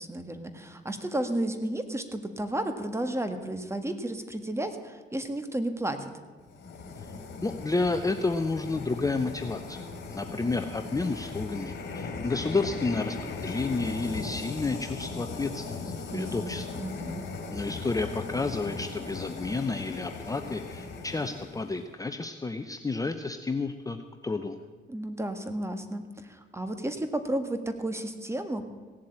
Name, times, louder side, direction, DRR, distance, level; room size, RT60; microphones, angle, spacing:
voice 1, 0.0-6.1 16.1-17.2 24.9-28.7, right 1 dB, 15° right, 8 dB, 1.6 m, -33 dB
sound 1, 6.4-21.8, left 4 dB, 65° left, 2.7 m, -38 dB
voice 2, 7.4-9.8 10.1-16.7 17.5-24.6, left 3 dB, 15° left, 7 dB, 0.8 m, -31 dB
17.0 x 7.5 x 8.8 m, 1.4 s
cardioid pair, 90°, 20 cm